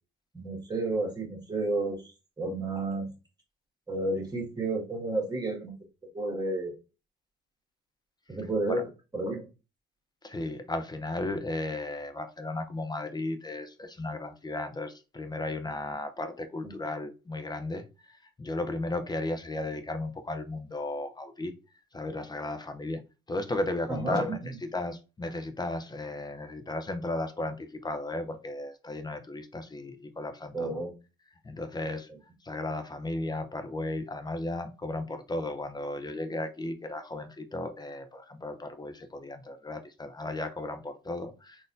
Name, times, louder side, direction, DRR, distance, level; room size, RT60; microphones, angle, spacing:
voice 1, 0.3-3.1 3.9-5.7 6.1-6.7 8.3-8.8 9.1-9.4 24.0-24.3 30.5-30.9, right 2 dB, 20° right, 1.6 m, -31 dB
voice 2, 10.2-21.5 21.9-30.8 31.4-32.1 32.4-41.7, left 2 dB, 20° left, 0.5 m, -35 dB
3.9 x 2.5 x 2.6 m
cardioid pair, 90°, 20 cm